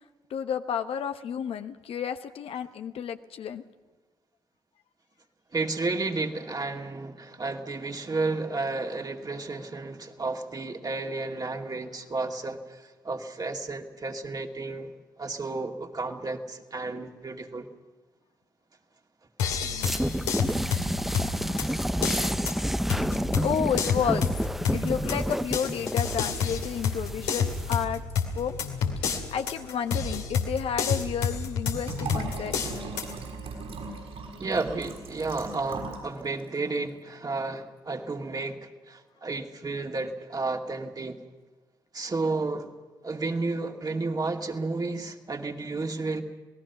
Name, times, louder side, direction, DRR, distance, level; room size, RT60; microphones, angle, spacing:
voice 1, 0.3-3.6 19.6-20.4 23.4-24.2 24.7-28.0 28.3-28.6 29.3-32.6, left 8 dB, 65° left, 8 dB, 1.0 m, -31 dB
voice 2, 5.5-14.9 15.2-17.7 34.4-41.2 41.9-42.7 43.0-46.2, right 3 dB, 35° right, 2 dB, 2.5 m, -32 dB
sound 1, 19.4-33.1, left 6 dB, 85° left, 2.4 m, -30 dB
sound 2, 19.8-27.8, equal, ahead, 0.6 m, -30 dB
Liquid, 31.8-36.1 36.4-36.5, right 4 dB, 70° right, 6.4 m, -38 dB
27.5 x 19.0 x 6.0 m, 1.3 s
hypercardioid pair, 45°, 11 cm